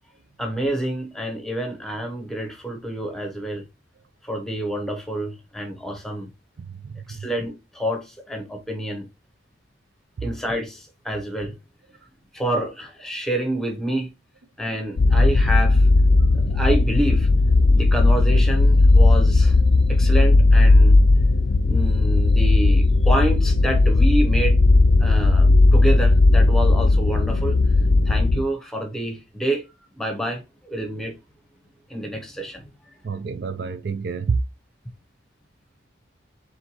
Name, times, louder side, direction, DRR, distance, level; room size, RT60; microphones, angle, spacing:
voice 1, 0.4-3.6 4.2-6.3 7.1-9.1 10.2-11.6 12.3-14.1 14.6-15.9 16.3-17.3 17.7-19.6 19.9-21.0 21.7-24.6 25.0-27.6 28.1-29.7 29.9-31.2 31.9-32.7, right 1 dB, ahead, 0.9 m, -28 dB
voice 2, 6.6-7.3 33.0-34.4, right 4 dB, 55° right, 0.4 m, -28 dB
sound 1, 15.0-28.4, left 2 dB, 55° left, 0.4 m, -16 dB
4.5 x 3.7 x 3.0 m
head